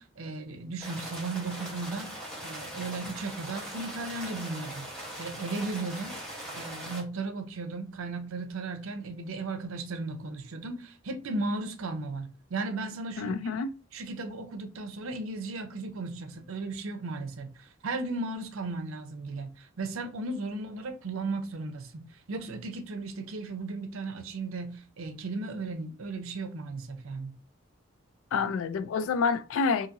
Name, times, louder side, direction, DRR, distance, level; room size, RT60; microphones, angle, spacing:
voice 1, 0.0-2.1 2.4-4.9 5.2-6.2 6.5-13.3 13.9-27.4, right 3 dB, 85° right, 0.6 m, -36 dB
sound 1, 0.8-7.0, right 1 dB, 5° left, 1.0 m, -40 dB
voice 2, 13.2-13.7 28.3-29.9, left 5 dB, 75° left, 0.3 m, -28 dB
2.8 x 2.7 x 2.5 m
head